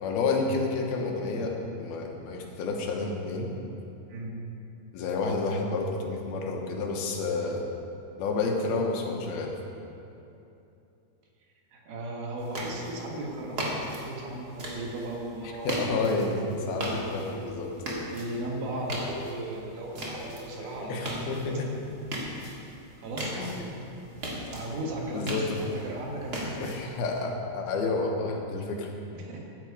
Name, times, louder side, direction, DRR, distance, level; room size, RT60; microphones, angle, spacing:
voice 1, 0.0-3.5 4.9-7.6 8.2-9.5 15.6-17.7 20.6-21.7 23.4-23.8 24.7-24.8 25.1-25.4 26.6-28.9, left 3 dB, 80° left, 1 dB, 3.0 m, -30 dB
voice 2, 11.7-15.8 18.1-21.1 23.0-23.5 24.5-26.8 29.1-29.4, right 1 dB, 75° right, -1 dB, 3.4 m, -36 dB
sound 1, 12.4-27.2, equal, 40° right, 1.6 m, -38 dB
sound 2, 15.7-21.5, right 1 dB, 50° left, 1.9 m, -42 dB
15.5 x 9.8 x 4.9 m, 2.8 s
omnidirectional pair, 4.5 m